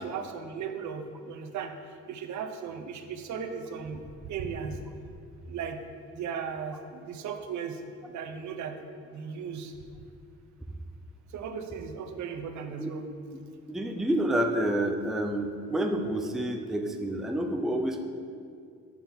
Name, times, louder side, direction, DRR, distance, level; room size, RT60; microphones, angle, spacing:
voice 1, 0.0-1.7 2.1-4.8 5.5-5.8 6.1-7.8 8.1-8.7 9.1-9.7 11.3-13.1, right 6 dB, 70° right, 5 dB, 0.7 m, -36 dB
voice 2, 13.7-18.0, right 1 dB, ahead, 4 dB, 0.4 m, -28 dB
7.2 x 4.3 x 3.9 m, 2.3 s
cardioid pair, 90°, 30 cm